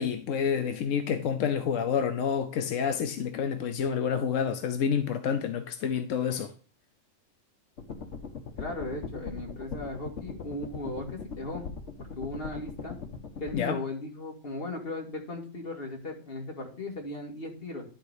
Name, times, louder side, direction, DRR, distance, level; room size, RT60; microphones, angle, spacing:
voice 1, 0.0-6.5 13.5-13.8, left 7 dB, 90° left, 1.1 m, -28 dB
sound 1, 7.8-13.5, left 5 dB, 70° left, 1.6 m, -40 dB
voice 2, 8.6-11.7 12.0-13.0 13.4-17.8, left 2 dB, 50° left, 2.2 m, -37 dB
11.5 x 4.0 x 4.8 m
omnidirectional pair, 1.3 m